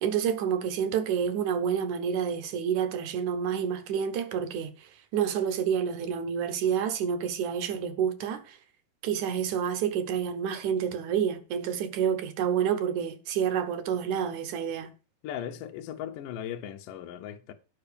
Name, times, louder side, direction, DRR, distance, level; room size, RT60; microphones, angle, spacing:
voice 1, 0.0-8.6 9.0-14.9, right 8 dB, 65° right, 2.3 m, -29 dB
voice 2, 15.2-17.5, left 10 dB, 75° left, 2.5 m, -37 dB
9.8 x 5.5 x 6.9 m
omnidirectional pair, 3.9 m